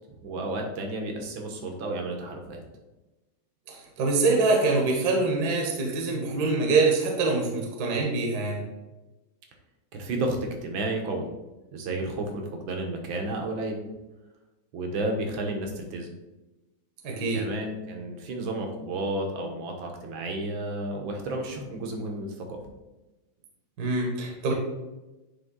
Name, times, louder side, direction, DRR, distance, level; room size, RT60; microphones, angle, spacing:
voice 1, 0.2-2.6 9.9-11.3 11.7-13.8 14.7-16.1 17.3-22.6, right 2 dB, 70° right, 3 dB, 1.8 m, -32 dB
voice 2, 3.7-8.6 17.0-17.4 23.8-24.5, right 3 dB, 50° right, 0 dB, 1.5 m, -24 dB
9.3 x 3.5 x 3.7 m, 1.1 s
omnidirectional pair, 2.3 m